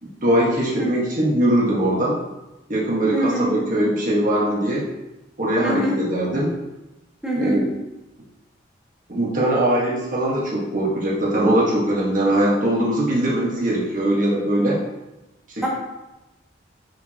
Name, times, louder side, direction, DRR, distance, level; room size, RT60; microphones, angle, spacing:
voice 1, 0.0-2.2 2.7-4.9 5.4-6.5 7.4-7.7 9.1-14.8 15.5-15.7, right 1 dB, 45° right, -5 dB, 1.5 m, -21 dB
voice 2, 3.1-3.5 5.6-6.0 7.2-7.6 15.6-15.7, equal, 5° right, -6 dB, 1.7 m, -24 dB
10.5 x 4.9 x 2.9 m, 1.0 s
head